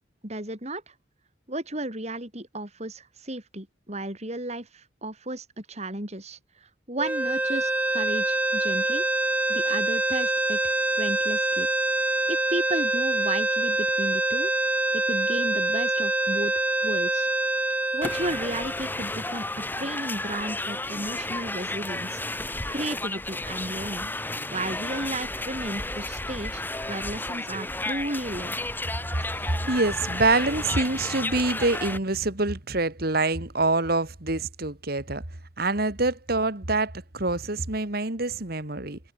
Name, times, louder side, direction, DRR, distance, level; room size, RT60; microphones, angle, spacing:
voice 1, 0.2-0.9 1.5-9.1 9.5-11.7 12.3-14.5 14.9-16.5 16.8-17.3 17.9-22.2 22.7-24.1 24.5-28.6, right 1 dB, 35° right, 5.2 m, -34 dB
sound 1, 7.0-19.2, right 2 dB, 10° right, 0.3 m, -25 dB
sound 2, 18.0-32.0, left 2 dB, 10° left, 6.0 m, -32 dB
voice 2, 28.9-35.2 35.6-39.0, right 2 dB, 50° right, 2.3 m, -26 dB
head